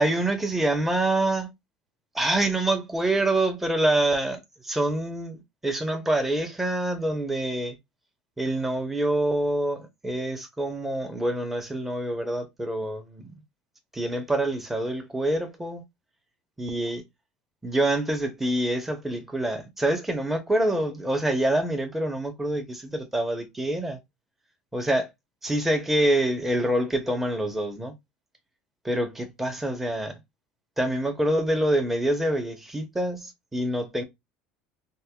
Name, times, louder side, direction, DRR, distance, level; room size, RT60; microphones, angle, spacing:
voice 1, 0.0-1.5 2.1-7.8 8.4-13.4 13.9-15.8 16.6-17.0 17.6-24.0 24.7-25.1 25.4-27.9 28.8-30.2 30.8-34.0, right 1 dB, 5° right, 1.0 m, -26 dB
5.4 x 2.0 x 2.3 m
supercardioid pair, 120°, 3 cm